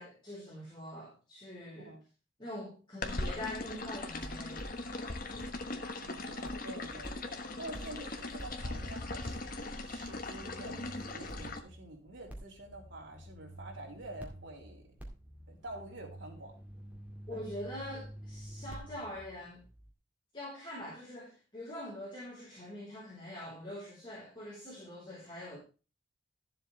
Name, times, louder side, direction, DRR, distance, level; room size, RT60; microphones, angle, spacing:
voice 1, 0.0-2.0 2.4-4.7 17.3-19.6 20.3-25.6, left 1 dB, 25° left, -5 dB, 4.2 m, -44 dB
sound 1, 3.0-11.6, left 2 dB, 45° left, 1.3 m, -40 dB
sound 2, 4.1-6.1 6.4-19.9, right 1 dB, 10° right, 2.2 m, -50 dB
voice 2, 5.8-14.9 15.5-16.5 17.3-17.4, right 1 dB, 80° right, 0 dB, 3.4 m, -48 dB
13.0 x 7.7 x 3.3 m, 0.33 s
head